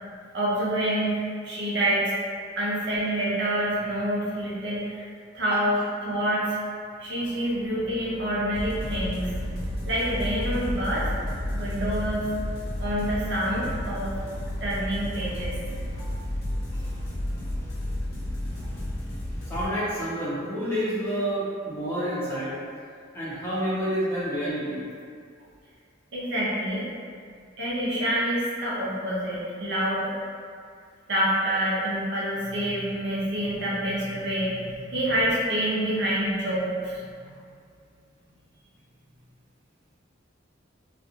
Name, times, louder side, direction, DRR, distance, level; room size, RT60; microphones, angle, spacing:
voice 1, 0.3-2.1 2.6-6.6 7.0-9.3 9.8-11.1 11.5-12.3 12.8-14.1 14.6-15.5 26.1-26.9 27.6-30.1 31.1-37.3, right 1 dB, 60° right, -7 dB, 0.6 m, -27 dB
sound 1, 7.2-18.9, equal, 85° left, 0.3 m, -37 dB
sound 2, 8.5-19.7, left 1 dB, 50° left, 0.7 m, -33 dB
voice 2, 19.5-22.6 23.1-24.8, equal, 10° left, -10 dB, 0.6 m, -28 dB
2.4 x 2.2 x 2.8 m, 2.2 s
head